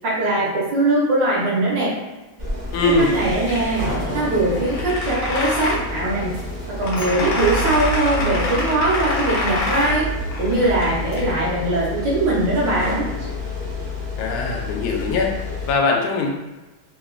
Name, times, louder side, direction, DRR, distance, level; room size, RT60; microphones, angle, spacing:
voice 1, 0.0-1.9 3.1-3.8 4.1-6.3 6.8-10.1 10.4-13.0, right 2 dB, 65° right, -5 dB, 1.3 m, -21 dB
sound 1, 2.4-15.7, left 3 dB, 20° right, 0.5 m, -30 dB
voice 2, 2.7-3.1 14.2-16.3, left 3 dB, 80° left, 1 dB, 1.4 m, -21 dB
sound 2, 2.8-11.3, equal, 65° left, 1.2 m, -27 dB
3.5 x 2.2 x 2.4 m, 1.1 s
omnidirectional pair, 2.3 m